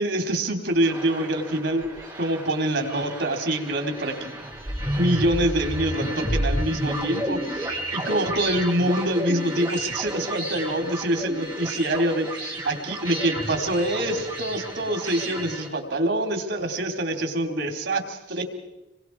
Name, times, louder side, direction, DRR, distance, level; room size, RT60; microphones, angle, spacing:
voice 1, 0.0-1.9 2.2-4.3 5.0-18.5, right 1 dB, 90° right, 5 dB, 3.7 m, -25 dB
sound 1, 0.7-15.7, right 1 dB, 25° right, 4.4 m, -31 dB
27.0 x 23.0 x 4.8 m, 0.91 s
head